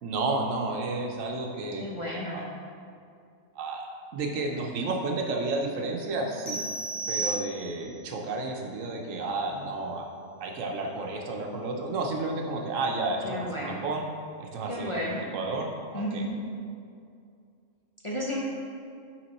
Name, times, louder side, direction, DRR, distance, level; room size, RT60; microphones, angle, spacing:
voice 1, 0.0-1.9 2.3-2.5 3.6-6.6 7.1-10.0 10.4-14.1 14.4-15.0 15.3-16.2, right 3 dB, 80° right, 1 dB, 1.1 m, -31 dB
voice 2, 1.8-2.5 13.2-13.9 14.7-15.3 15.9-16.4 18.0-18.4, equal, 30° left, -5 dB, 0.6 m, -32 dB
sound 1, 6.5-8.0, right 3 dB, 85° left, 1.6 m, -33 dB
6.0 x 5.1 x 4.1 m, 2.4 s
omnidirectional pair, 1.3 m